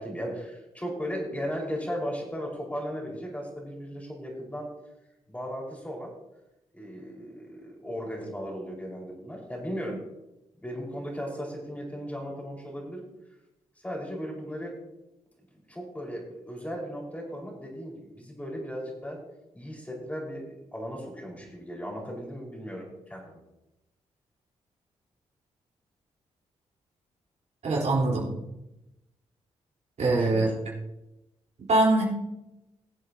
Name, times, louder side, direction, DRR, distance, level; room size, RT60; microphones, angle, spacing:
voice 1, 0.0-4.7 5.3-6.1 6.7-10.0 10.6-13.0 13.8-14.8 15.7-19.2 19.5-23.4 30.0-30.5, equal, 10° left, -2 dB, 4.9 m, -36 dB
voice 2, 27.6-28.3 30.0-30.5 31.7-32.0, right 2 dB, 60° right, -4 dB, 4.0 m, -22 dB
20.5 x 7.6 x 2.9 m, 0.92 s
supercardioid pair, 55°, 13 cm